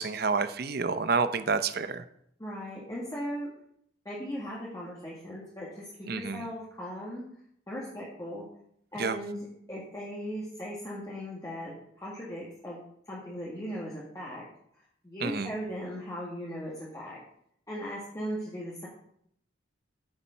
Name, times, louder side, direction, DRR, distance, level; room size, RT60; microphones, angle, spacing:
voice 1, 0.0-2.0 6.1-6.4 9.0-9.2 15.2-15.5, right 4 dB, 50° right, 11 dB, 0.7 m, -29 dB
voice 2, 2.4-3.5 4.0-7.2 7.7-8.4 8.9-12.8 13.0-14.4 15.0-17.2 17.7-18.9, equal, 15° left, -6 dB, 1.8 m, -38 dB
8.8 x 7.2 x 5.6 m, 0.70 s
head